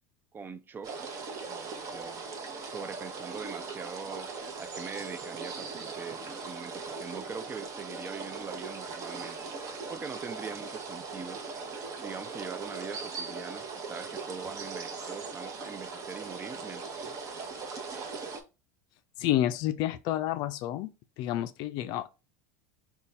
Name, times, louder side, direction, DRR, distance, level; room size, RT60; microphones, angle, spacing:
voice 1, 0.3-1.0 1.5-2.3 2.7-4.3 4.6-9.5 9.9-11.4 12.0-17.1, right 5 dB, 25° right, 0.4 m, -42 dB
sound 1, 0.8-18.4, right 4 dB, 40° right, 0.8 m, -39 dB
voice 2, 19.2-20.9 21.2-22.1, left 13 dB, 55° left, 0.4 m, -29 dB
4.1 x 2.3 x 3.2 m
hypercardioid pair, 100°, 9 cm